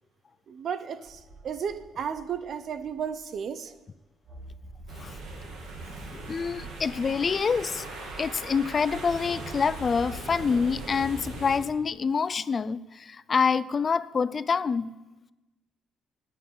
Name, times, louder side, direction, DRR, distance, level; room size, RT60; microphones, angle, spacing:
voice 1, 0.5-3.8, right 7 dB, 60° right, 0.8 m, -34 dB
sound 1, 1.1-3.6 4.2-8.9 9.6-10.8, right 1 dB, 35° right, 2.3 m, -48 dB
sound 2, 4.9-11.6, right 3 dB, 85° right, 2.6 m, -40 dB
voice 2, 6.1-7.9 8.2-14.9, left 5 dB, 40° left, 0.4 m, -26 dB
9.4 x 9.3 x 9.2 m
cardioid pair, 90°, 0 cm